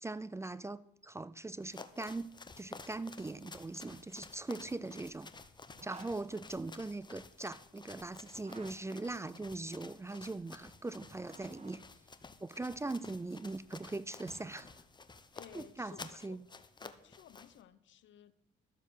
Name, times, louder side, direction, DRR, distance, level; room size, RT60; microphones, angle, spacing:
voice 1, 0.0-5.3 5.8-11.8 12.4-14.7 15.5-16.4, right 2 dB, 15° right, 0.4 m, -41 dB
sound 1, 1.6-17.6, left 4 dB, 20° left, 0.9 m, -53 dB
Zipper (clothing), 5.7-6.1 8.3-8.7 10.9-11.7 13.6-14.7, right 3 dB, 35° right, 1.8 m, -55 dB
voice 2, 15.3-16.4 16.8-18.3, left 10 dB, 70° left, 0.9 m, -56 dB
12.5 x 7.3 x 6.3 m
cardioid pair, 90°, 20 cm